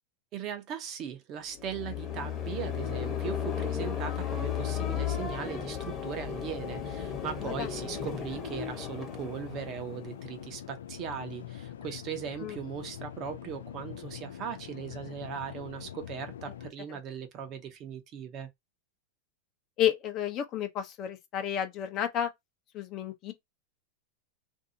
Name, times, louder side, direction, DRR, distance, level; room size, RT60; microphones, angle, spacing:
voice 1, 0.3-18.5, right 8 dB, 40° right, 0.8 m, -39 dB
sound 1, 1.5-10.6, left 8 dB, 25° left, 1.0 m, -35 dB
sound 2, 6.6-16.7, left 10 dB, 90° left, 0.3 m, -44 dB
voice 2, 19.8-22.3 22.7-23.3, left 10 dB, 40° left, 0.7 m, -31 dB
2.6 x 2.6 x 2.6 m
supercardioid pair, 130°, 0 cm